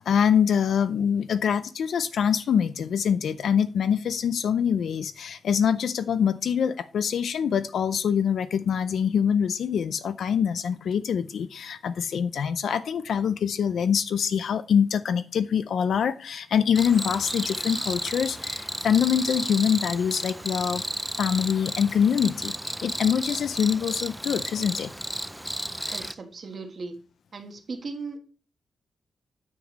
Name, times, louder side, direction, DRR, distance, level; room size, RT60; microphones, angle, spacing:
voice 1, 0.1-20.9 21.2-24.9, left 7 dB, 65° left, 12 dB, 0.5 m, -24 dB
Cricket, 16.8-26.1, equal, 5° right, 0.4 m, -33 dB
voice 2, 25.9-27.0 27.3-28.2, right 4 dB, 35° right, 5 dB, 1.4 m, -37 dB
9.6 x 7.2 x 3.1 m, 0.36 s
wide cardioid pair, 180°, 0 cm